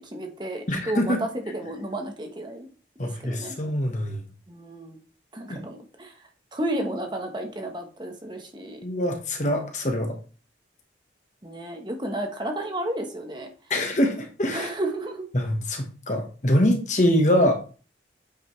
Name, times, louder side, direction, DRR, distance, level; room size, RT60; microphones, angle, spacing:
voice 1, 0.0-2.7 3.0-3.5 4.5-5.0 5.3-8.8 11.4-13.5 14.5-15.2, right 1 dB, 25° right, 4 dB, 1.1 m, -32 dB
voice 2, 0.7-1.2 3.0-4.2 5.5-5.6 8.8-10.1 13.7-14.7 15.3-17.5, left 1 dB, 40° left, 3 dB, 1.4 m, -24 dB
8.6 x 5.1 x 3.2 m, 0.37 s
head